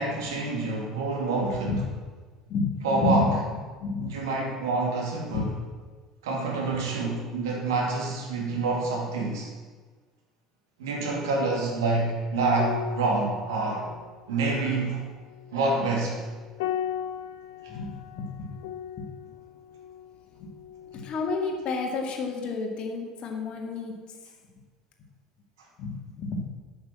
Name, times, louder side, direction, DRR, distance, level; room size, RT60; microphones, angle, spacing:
voice 1, 0.0-1.7 2.8-3.3 4.0-5.5 6.2-9.5 10.8-13.9 14.3-15.0 15.5-16.2, right 3 dB, 75° right, -1 dB, 2.6 m, -27 dB
voice 2, 1.4-1.8 2.5-3.4 3.8-4.1 5.3-5.4 17.7-18.5 19.0-19.1 20.4-20.5 20.9-23.9 25.8-26.4, left 3 dB, 50° left, 2 dB, 2.1 m, -30 dB
sound 1, 12.5-21.3 21.5-21.8, left 10 dB, 70° left, 0.6 m, -38 dB
8.7 x 8.1 x 7.0 m, 1.4 s
figure-of-eight pair, 65°, 2 cm